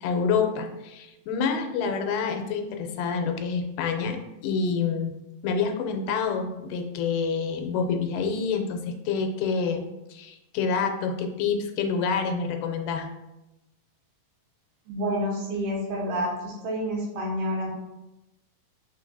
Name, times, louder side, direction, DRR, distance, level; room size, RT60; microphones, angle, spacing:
voice 1, 0.0-4.2 4.4-5.1 5.4-9.8 10.1-13.1, left 5 dB, 85° left, 5 dB, 2.1 m, -27 dB
voice 2, 14.9-17.7, equal, 85° right, -2 dB, 2.7 m, -29 dB
5.0 x 3.5 x 2.6 m, 0.97 s
omnidirectional pair, 3.7 m